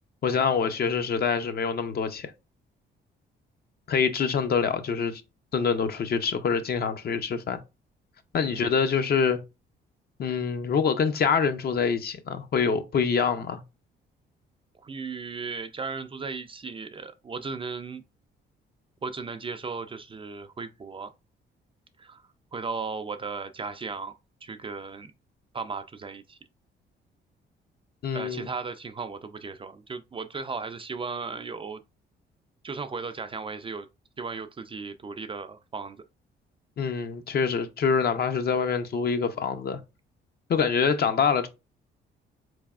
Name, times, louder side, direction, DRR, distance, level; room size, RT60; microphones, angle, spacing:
voice 1, 0.2-2.3 3.9-5.2 5.5-7.6 8.3-9.4 10.2-13.6 28.0-28.5 36.8-39.8 40.5-41.5, left 6 dB, 50° left, 0.6 m, -25 dB
voice 2, 14.8-18.0 19.0-21.1 22.0-22.2 22.5-24.1 24.4-25.1 25.5-26.4 28.1-31.8 32.6-33.9 34.2-36.0, right 4 dB, 25° right, 0.4 m, -36 dB
3.9 x 3.3 x 2.4 m
cardioid pair, 90°, 20 cm